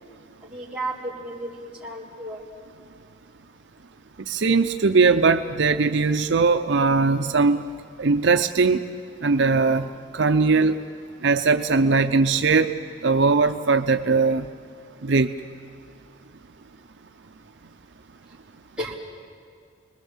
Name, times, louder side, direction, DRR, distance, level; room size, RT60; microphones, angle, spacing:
voice 1, 0.5-2.4 18.8-19.0, right 1 dB, 5° right, -6 dB, 3.7 m, -33 dB
voice 2, 4.3-7.6 8.0-8.8 9.2-9.9 10.1-10.8 11.2-12.7 13.0-14.5 15.0-15.3, right 4 dB, 65° right, 7 dB, 0.6 m, -20 dB
30.0 x 20.5 x 7.3 m, 2.3 s
head